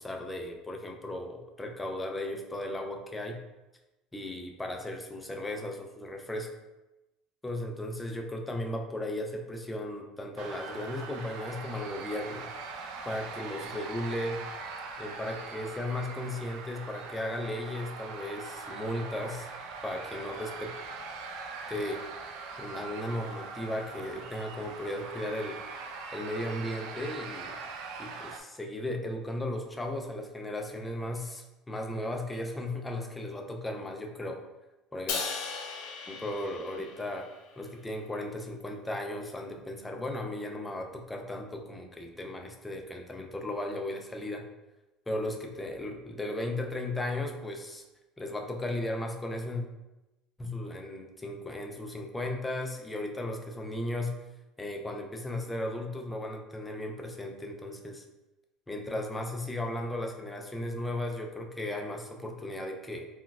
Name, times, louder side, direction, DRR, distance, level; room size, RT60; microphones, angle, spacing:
voice 1, 0.0-3.4 4.1-6.5 7.4-12.5 13.0-14.4 15.0-19.5 19.8-20.7 21.7-22.0 22.6-25.6 26.1-27.5 28.0-34.4 34.9-35.2 36.1-37.3 37.6-44.5 45.1-47.8 48.2-49.6 50.4-54.2 54.6-58.0 58.7-63.0, left 1 dB, 10° left, 2 dB, 0.3 m, -36 dB
Crowd Screaming A, 10.4-28.4, right 4 dB, 75° right, 0.4 m, -42 dB
Crash cymbal, 35.1-37.5, left 5 dB, 85° left, 0.6 m, -37 dB
3.9 x 2.2 x 2.3 m, 1.0 s
cardioid pair, 140°, 0 cm